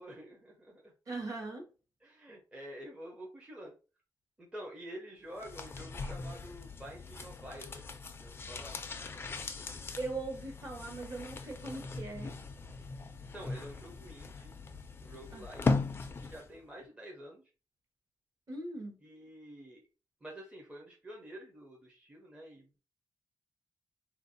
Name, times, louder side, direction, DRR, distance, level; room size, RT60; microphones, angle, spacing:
voice 1, 0.0-0.9 2.0-3.7 4.4-7.8 8.2-8.8 13.3-14.5 15.0-15.8 16.2-17.4 19.0-19.8 20.2-22.8, right 1 dB, 15° right, 0.6 m, -48 dB
voice 2, 1.1-1.6 10.0-12.3 15.3-15.4 18.5-19.0, right 2 dB, 45° right, 1.1 m, -40 dB
sound 1, 5.3-16.6 16.8-16.9, left 3 dB, 30° left, 0.4 m, -39 dB
3.4 x 2.6 x 2.6 m
wide cardioid pair, 145°, 8 cm